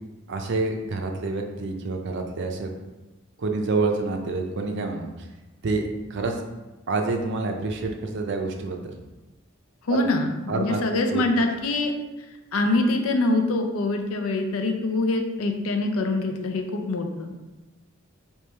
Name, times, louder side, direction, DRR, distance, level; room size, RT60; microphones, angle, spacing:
voice 1, 0.3-2.7 3.4-5.1 5.6-5.8 6.1-6.4 6.9-8.9 9.9-10.1 10.5-10.8 11.1-11.2, right 3 dB, 55° right, 3 dB, 0.5 m, -27 dB
voice 2, 9.9-11.9 12.5-17.3, left 2 dB, 80° left, 4 dB, 0.5 m, -24 dB
3.3 x 3.0 x 4.4 m, 1.1 s
head